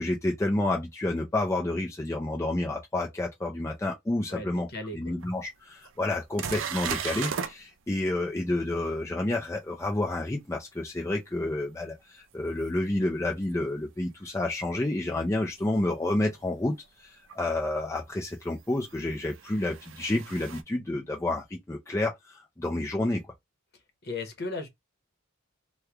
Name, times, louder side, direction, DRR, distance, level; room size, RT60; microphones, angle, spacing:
voice 1, 0.0-4.7 4.9-23.2, left 2 dB, 15° left, 0.5 m, -29 dB
voice 2, 4.3-5.2 24.0-24.7, left 2 dB, 50° left, 1.0 m, -36 dB
sound 1, 5.2-5.3 5.8-5.9 6.4-7.5 12.7-12.8 15.5-15.6 17.3-17.4 18.8-20.6, right 7 dB, 65° right, 0.5 m, -35 dB
3.2 x 2.3 x 3.4 m
head